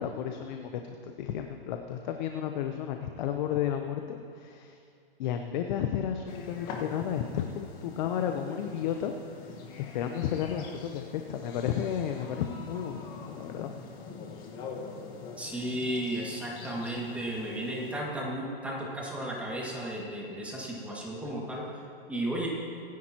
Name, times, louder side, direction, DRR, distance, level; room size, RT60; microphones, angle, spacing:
voice 1, 0.0-4.8 5.2-9.1 9.4-9.6 9.9-13.0 13.3-13.7, left 9 dB, 50° left, 5 dB, 0.8 m, -32 dB
sound 1, 6.3-18.0, left 5 dB, 30° left, 1.6 m, -45 dB
voice 2, 15.4-21.6 22.1-22.5, right 1 dB, 5° right, -4 dB, 2.0 m, -34 dB
23.0 x 11.0 x 3.0 m, 2.4 s
hypercardioid pair, 145°, 31 cm